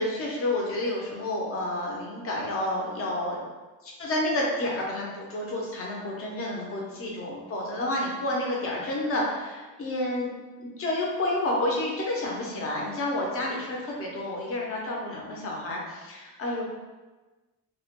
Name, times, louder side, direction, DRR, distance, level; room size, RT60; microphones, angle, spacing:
voice 1, 0.0-3.4 3.8-10.3 10.6-16.6, left 1 dB, 35° left, -2 dB, 0.4 m, -30 dB
2.1 x 2.1 x 2.8 m, 1.2 s
cardioid pair, 175°, 40 cm